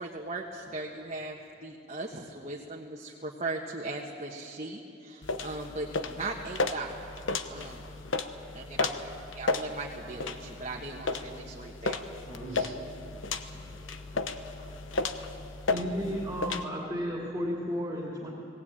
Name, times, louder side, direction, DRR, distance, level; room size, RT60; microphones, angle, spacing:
voice 1, 0.0-7.1 7.5-7.9 8.5-9.0 9.3-12.0 12.5-12.7, right 2 dB, 35° right, -2 dB, 1.5 m, -38 dB
sound 1, 5.2-16.6, left 3 dB, 75° left, 1.0 m, -34 dB
voice 2, 12.2-12.9 13.5-15.7, right 1 dB, 40° left, -2 dB, 6.4 m, -48 dB
voice 3, 15.7-18.3, equal, 15° right, -3 dB, 2.6 m, -33 dB
19.0 x 18.5 x 8.9 m, 2.7 s
head